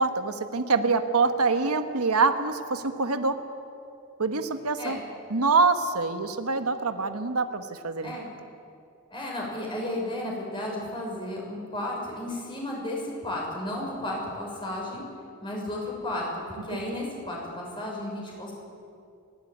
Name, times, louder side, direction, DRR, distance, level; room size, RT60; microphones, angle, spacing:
voice 1, 0.0-3.4 4.2-5.0 5.3-8.2 16.7-16.8, right 4 dB, 90° right, 8 dB, 1.4 m, -25 dB
voice 2, 9.1-15.0 15.4-18.5, left 1 dB, 20° left, -2 dB, 6.1 m, -33 dB
30.0 x 12.5 x 9.5 m, 2.5 s
head